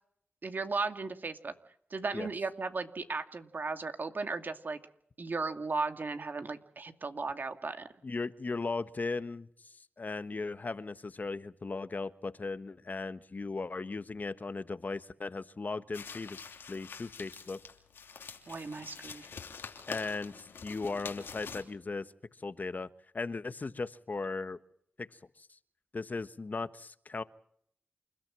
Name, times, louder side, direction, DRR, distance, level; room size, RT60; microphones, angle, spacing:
voice 1, 0.4-1.5 1.9-4.8 5.2-7.9 18.5-19.3, right 3 dB, 60° right, 8 dB, 2.4 m, -36 dB
voice 2, 8.0-17.6 19.9-22.1 22.4-22.9 23.1-24.6 25.0-25.1 25.4-25.5 25.9-27.2, left 3 dB, 50° left, 13 dB, 1.3 m, -37 dB
sound 1, 15.9-21.6, left 6 dB, 85° left, 2.9 m, -46 dB
28.5 x 13.5 x 7.6 m, 0.67 s
cardioid pair, 45°, 4 cm